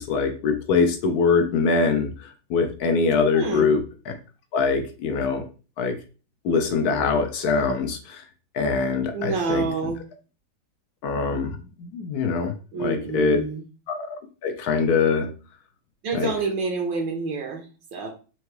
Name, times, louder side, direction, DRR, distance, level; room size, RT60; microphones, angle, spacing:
voice 1, 0.0-4.1 4.5-5.5 5.8-6.0 6.4-8.2 8.5-9.6 11.0-12.5 12.8-13.4 13.9-15.3 16.1-16.3, left 4 dB, 75° left, 7 dB, 0.9 m, -23 dB
voice 2, 3.3-3.7 9.1-10.0 12.7-13.6 16.0-18.1, right 4 dB, 75° right, 3 dB, 1.5 m, -28 dB
4.6 x 2.7 x 3.1 m, 0.34 s
omnidirectional pair, 2.1 m